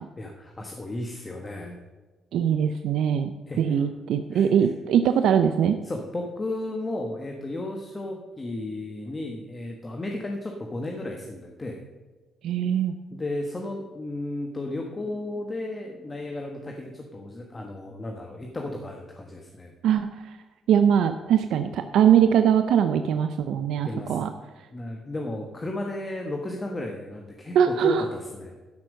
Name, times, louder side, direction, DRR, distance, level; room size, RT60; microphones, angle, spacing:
voice 1, 0.2-1.8 3.5-3.9 4.3-4.5 5.8-11.8 13.1-19.7 23.8-24.3 24.7-28.5, left 2 dB, 25° left, 2 dB, 1.4 m, -34 dB
voice 2, 2.3-3.3 3.6-5.8 12.4-12.9 19.8-20.4 20.7-24.3 27.5-28.1, right 8 dB, 80° right, 8 dB, 0.5 m, -22 dB
13.0 x 5.9 x 6.4 m, 1.3 s
cardioid pair, 90°, 0 cm